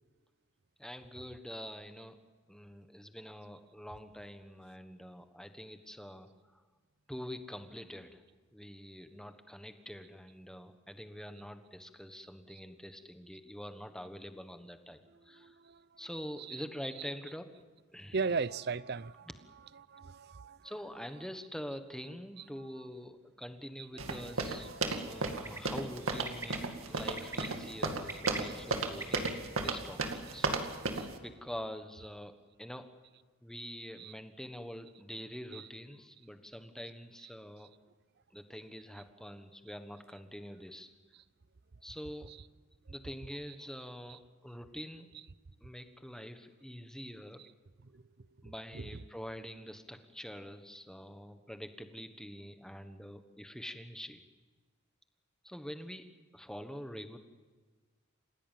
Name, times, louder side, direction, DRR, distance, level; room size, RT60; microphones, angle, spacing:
voice 1, 0.8-2.2 2.5-6.6 7.1-8.2 8.5-15.6 16.0-17.5 17.9-18.2 20.6-24.7 25.0-26.6 26.9-30.5 31.2-32.3 32.6-32.9 33.4-37.7 38.3-40.9 41.8-42.3 42.9-45.1 45.6-47.4 48.4-54.2 55.4-56.1 56.3-57.2, equal, 5° left, 1.3 m, -45 dB
voice 2, 15.3-15.9 16.4-16.6 18.1-19.3 19.8-20.7 24.1-25.5 31.0-31.1 34.0-34.1 35.5-35.7 44.1-44.2 47.8-48.0 48.4-49.0, right 4 dB, 45° right, 0.6 m, -39 dB
sound 1, 24.0-31.1, right 3 dB, 65° right, 2.3 m, -34 dB
Bird, 25.3-25.6 26.3-26.6 27.2-27.5 27.9-29.3, right 2 dB, 15° right, 2.0 m, -41 dB
29.0 x 16.5 x 7.5 m
head